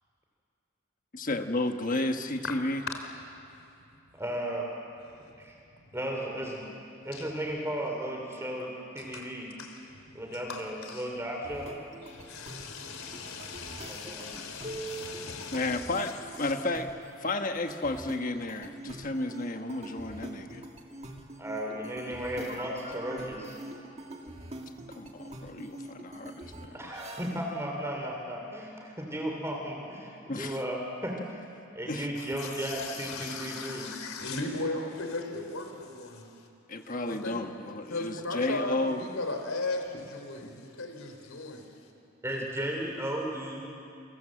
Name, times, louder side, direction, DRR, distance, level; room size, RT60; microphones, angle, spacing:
voice 1, 1.1-2.8 15.5-16.9 17.2-20.6 24.9-26.9 30.3-30.6 31.9-32.1 36.7-39.0 40.4-40.5, left 2 dB, 40° left, 6 dB, 1.3 m, -32 dB
voice 2, 4.1-4.7 5.4-5.6 5.9-6.7 7.0-9.5 10.1-11.8 13.9-14.3 21.4-23.6 26.7-31.4 31.7-33.9 42.2-43.6, right 1 dB, 15° right, 0 dB, 3.3 m, -35 dB
voice 3, 9.6-11.1 12.0-16.2 16.4-16.5 32.2-36.5 37.1-37.5 37.7-41.7, left 3 dB, 85° left, 5 dB, 3.6 m, -38 dB
sound 1, 11.4-27.6, right 2 dB, 30° right, 2.2 m, -44 dB
28.5 x 26.0 x 7.7 m, 2.6 s
head